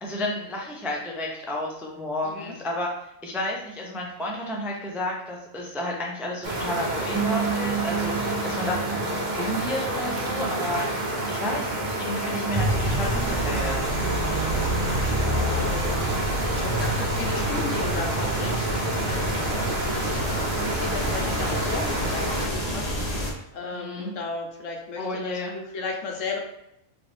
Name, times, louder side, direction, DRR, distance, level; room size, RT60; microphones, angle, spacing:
voice 1, 0.0-13.7 23.7-24.1 25.0-25.5, left 1 dB, 5° right, -2 dB, 0.3 m, -32 dB
voice 2, 2.2-2.5 15.1-16.0 16.3-26.4, left 4 dB, 75° left, 0 dB, 1.1 m, -35 dB
sound 1, 6.4-22.5, right 1 dB, 50° right, 0.6 m, -29 dB
sound 2, 7.1-12.7, right 9 dB, 70° right, 1.0 m, -34 dB
sound 3, 12.5-23.3, right 1 dB, 35° left, 0.8 m, -28 dB
3.9 x 2.4 x 3.3 m, 0.81 s
omnidirectional pair, 1.3 m